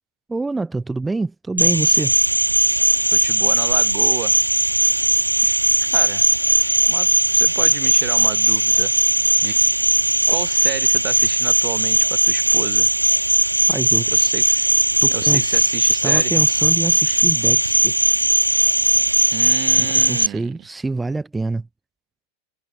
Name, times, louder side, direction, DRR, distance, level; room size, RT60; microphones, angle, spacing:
voice 1, 0.3-2.1 13.7-14.1 15.0-18.0 19.8-21.7, right 3 dB, 10° right, 0.6 m, -26 dB
Cricket, 1.6-20.3, right 1 dB, 85° right, 0.4 m, -18 dB
voice 2, 3.1-4.4 5.5-5.6 5.9-6.2 6.9-8.9 9.4-9.6 10.3-12.9 14.1-14.7 15.1-16.3 19.3-20.5, right 15 dB, 35° right, 1.5 m, -31 dB
figure-of-eight pair, 90°, 0 cm